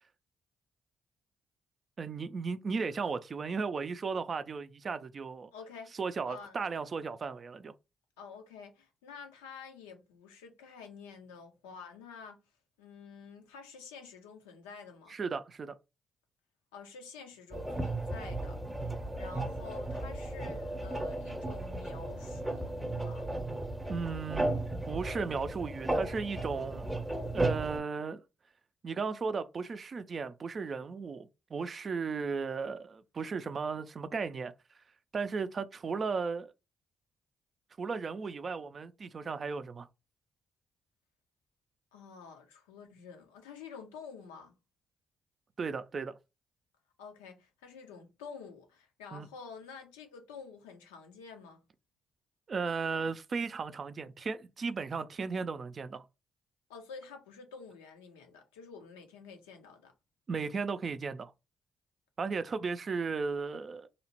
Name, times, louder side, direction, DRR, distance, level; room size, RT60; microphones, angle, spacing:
voice 1, 2.0-5.5 6.0-7.7 15.1-15.8 23.9-24.6 24.9-26.9 27.3-28.2 28.8-34.5 35.1-36.5 37.8-39.9 45.6-46.1 49.1-49.3 52.5-56.0 60.3-61.3 62.2-63.9, right 5 dB, 50° right, 0.3 m, -35 dB
voice 2, 5.5-6.0 6.3-6.6 8.2-12.4 12.8-15.1 16.7-18.6 19.2-23.3 41.9-44.5 47.0-51.6 56.7-59.9, left 5 dB, 85° left, 0.4 m, -49 dB
sound 1, 17.5-27.8, right 1 dB, 10° right, 0.7 m, -35 dB
2.7 x 2.0 x 2.8 m
hypercardioid pair, 45°, 0 cm